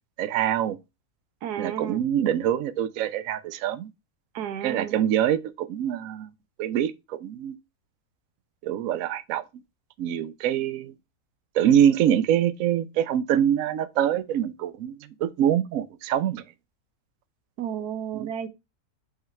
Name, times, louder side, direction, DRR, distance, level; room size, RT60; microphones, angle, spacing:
voice 1, 0.2-0.8 1.6-3.9 4.6-6.3 6.6-7.6 8.6-9.4 10.0-10.9 11.5-16.4 18.1-18.3, right 10 dB, 65° right, 1.0 m, -24 dB
voice 2, 1.4-2.0 4.3-5.0 17.6-18.5, right 9 dB, 85° right, 1.3 m, -32 dB
5.9 x 3.9 x 4.2 m
omnidirectional pair, 1.7 m